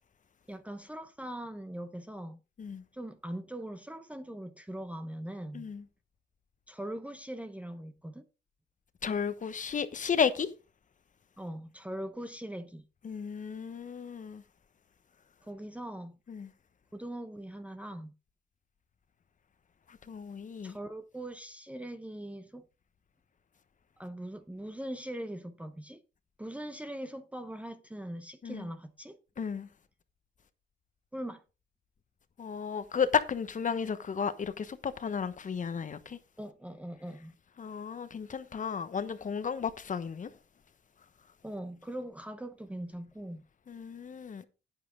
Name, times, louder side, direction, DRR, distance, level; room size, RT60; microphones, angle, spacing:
voice 1, 0.5-2.4 2.9-5.7 6.7-8.2 11.4-12.9 15.4-16.2 16.9-18.1 20.6-22.6 24.0-26.0 26.4-29.2 31.1-31.4 36.4-37.3 41.4-43.5, right 1 dB, 5° right, 0.9 m, -41 dB
voice 2, 5.5-5.8 9.0-10.5 13.0-14.4 16.3-16.5 19.9-20.8 28.4-28.7 29.4-29.7 32.4-36.2 37.6-40.3 43.7-44.4, left 6 dB, 40° left, 1.1 m, -33 dB
9.5 x 8.8 x 3.8 m
cardioid pair, 90°, 20 cm